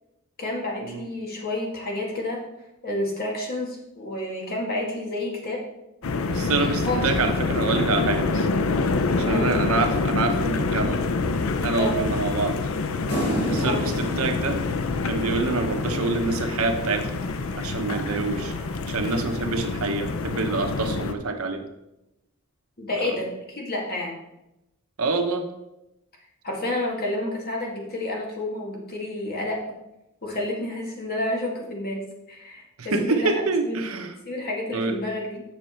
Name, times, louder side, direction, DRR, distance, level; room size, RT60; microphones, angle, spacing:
voice 1, 0.4-2.4 2.8-5.6 6.8-7.0 9.3-9.5 11.7-12.0 13.6-13.8 22.8-24.1 26.4-29.6 30.2-33.3 33.6-33.8 34.3-35.4, left 1 dB, 45° left, -1 dB, 2.0 m, -30 dB
sound 1, 6.0-21.1, left 3 dB, 70° left, 0.6 m, -26 dB
voice 2, 6.3-8.5 9.1-11.0 11.6-12.6 13.5-14.6 15.0-17.2 17.6-18.5 18.9-21.6 22.9-23.2 25.0-25.5 32.8-34.1 34.7-35.0, right 3 dB, 80° right, 5 dB, 1.0 m, -26 dB
sound 2, 13.1-15.8 17.2-19.3, right 1 dB, 85° left, 3.4 m, -32 dB
7.3 x 6.3 x 4.3 m, 0.89 s
head